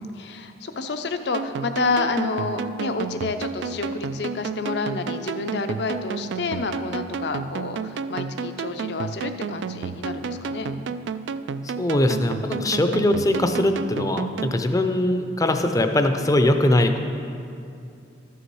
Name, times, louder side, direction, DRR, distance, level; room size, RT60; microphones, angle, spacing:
voice 1, 0.0-10.7, left 3 dB, 65° left, 8 dB, 0.6 m, -29 dB
sound 1, 1.3-14.6, right 5 dB, 80° right, 0.3 m, -31 dB
voice 2, 11.6-17.0, left 1 dB, 20° left, 6 dB, 0.5 m, -21 dB
13.0 x 7.0 x 4.6 m, 2.6 s
head